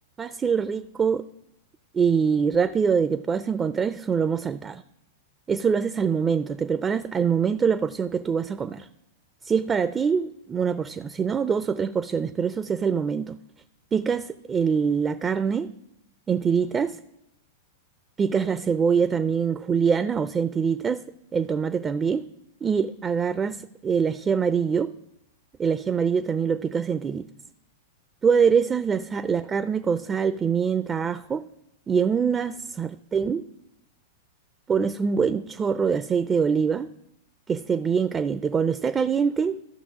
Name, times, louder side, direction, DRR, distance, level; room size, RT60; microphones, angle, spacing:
voice 1, 0.2-1.2 1.9-4.8 5.5-8.9 9.4-13.4 13.9-15.7 16.3-17.0 18.2-21.0 21.3-22.2 22.6-24.9 25.6-27.3 28.2-31.4 31.9-33.4 34.7-36.9 37.5-39.6, right 6 dB, 20° right, 0.4 m, -24 dB
14.0 x 5.7 x 3.6 m
hypercardioid pair, 105°, 0 cm